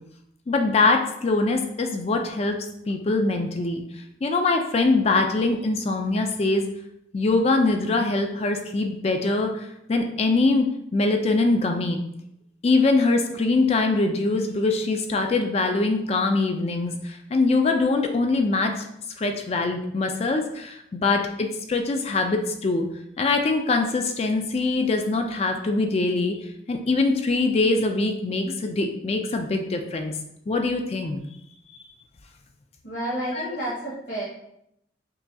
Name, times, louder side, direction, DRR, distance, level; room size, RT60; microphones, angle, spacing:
voice 1, 0.5-2.6 2.9-3.8 4.2-6.6 7.1-12.0 12.6-18.9 19.2-22.9 23.2-26.4 26.7-30.1 30.5-31.2 33.4-33.5, left 3 dB, 35° left, 4 dB, 0.3 m, -23 dB
voice 2, 32.8-34.2, right 1 dB, 80° left, -9 dB, 1.4 m, -30 dB
5.5 x 2.7 x 2.3 m, 0.77 s
head